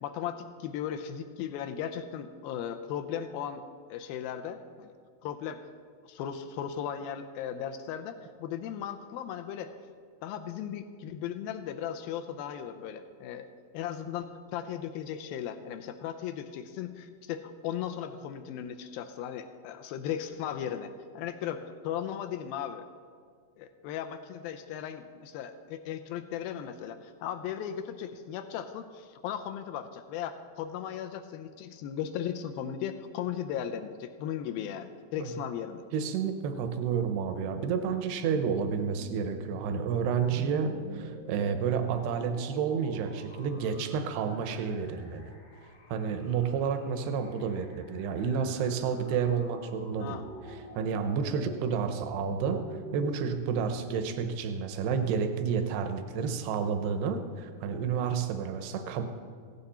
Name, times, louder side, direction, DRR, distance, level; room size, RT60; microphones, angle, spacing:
voice 1, 0.0-3.6 3.9-4.9 5.2-5.7 6.1-9.7 10.2-13.5 13.7-22.8 23.6-35.8 50.0-50.3, left 9 dB, 80° left, 8 dB, 2.2 m, -37 dB
voice 2, 35.9-45.3 45.9-50.2 50.5-52.7 52.9-59.0, right 6 dB, 85° right, 8 dB, 2.9 m, -30 dB
sound 1, 38.7-54.1, right 1 dB, 40° left, 0.9 m, -47 dB
16.5 x 15.5 x 4.3 m, 2.1 s
omnidirectional pair, 4.8 m